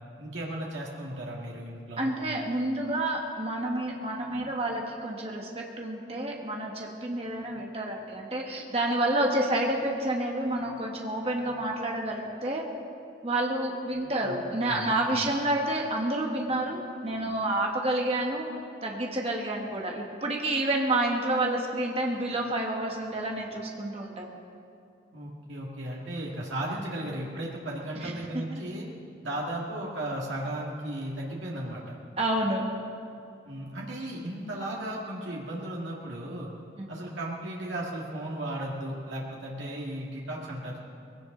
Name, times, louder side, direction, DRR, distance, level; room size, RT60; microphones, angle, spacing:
voice 1, 0.2-2.1 14.2-14.3 14.7-15.3 25.1-28.9 29.2-32.0 33.5-36.5 36.9-40.8, right 1 dB, 90° right, -3 dB, 2.0 m, -35 dB
voice 2, 2.0-12.7 13.2-18.5 18.8-24.3 28.0-28.1 32.2-32.7 36.8-36.9, right 1 dB, 30° right, 0 dB, 1.5 m, -29 dB
20.0 x 17.0 x 3.9 m, 2.5 s
head